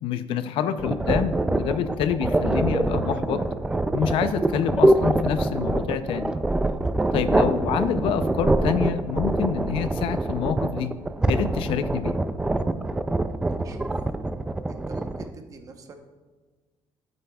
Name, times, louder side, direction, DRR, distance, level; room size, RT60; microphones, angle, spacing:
voice 1, 0.0-3.4 3.9-6.3 7.1-10.9 11.3-12.2, left 8 dB, 75° left, 11 dB, 0.6 m, -27 dB
sound 1, 0.8-15.3, right 2 dB, 10° right, 0.3 m, -24 dB
voice 2, 14.7-16.0, right 3 dB, 40° right, 5 dB, 0.9 m, -44 dB
12.0 x 9.1 x 2.3 m, 1.4 s
cardioid pair, 150°, 9 cm